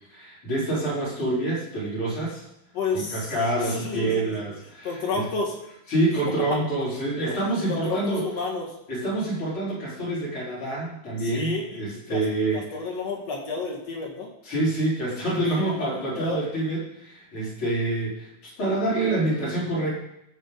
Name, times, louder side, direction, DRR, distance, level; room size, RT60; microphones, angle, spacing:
voice 1, 0.1-2.4 2.9-5.0 5.9-8.2 8.9-12.6 14.4-19.9, right 2 dB, 30° left, -7 dB, 5.1 m, -27 dB
voice 2, 2.7-4.5 4.8-5.5 6.5-6.6 7.2-7.4 7.7-8.7 11.2-12.2 12.5-14.3 15.6-16.4, left 4 dB, 50° left, -1 dB, 2.6 m, -31 dB
14.5 x 7.7 x 4.1 m, 0.83 s
omnidirectional pair, 4.5 m